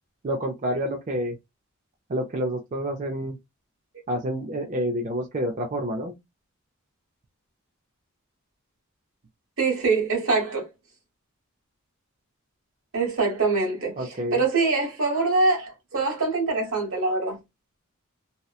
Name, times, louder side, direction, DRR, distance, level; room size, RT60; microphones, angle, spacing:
voice 1, 0.2-1.4 2.1-3.4 4.1-6.1 14.0-14.4, equal, 35° right, 0.4 m, -28 dB
voice 2, 9.6-10.7 12.9-17.4, right 3 dB, 65° right, 1.2 m, -24 dB
2.8 x 2.1 x 2.3 m
head